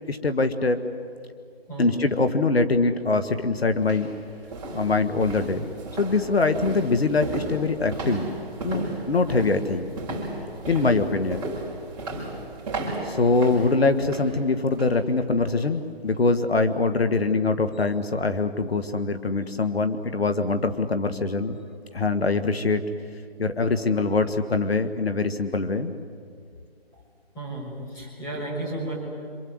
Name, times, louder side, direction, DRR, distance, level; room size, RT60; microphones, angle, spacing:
voice 1, 0.1-0.8 1.8-4.1 4.7-5.7 6.0-8.3 8.6-9.9 10.7-11.4 13.0-21.6 21.9-22.8 23.4-26.0, left 3 dB, 75° left, 9 dB, 1.9 m, -23 dB
voice 2, 1.7-2.0 9.2-9.5 10.7-10.9 13.0-13.2 24.0-24.2 26.9-27.0 27.3-29.0, right 1 dB, 10° left, -3 dB, 6.7 m, -34 dB
sound 1, 3.1-3.2 3.7-15.0 15.4-15.6 16.1-16.2, right 2 dB, 10° right, 5.5 m, -35 dB
27.5 x 27.0 x 8.1 m, 2.3 s
figure-of-eight pair, 165°, 31 cm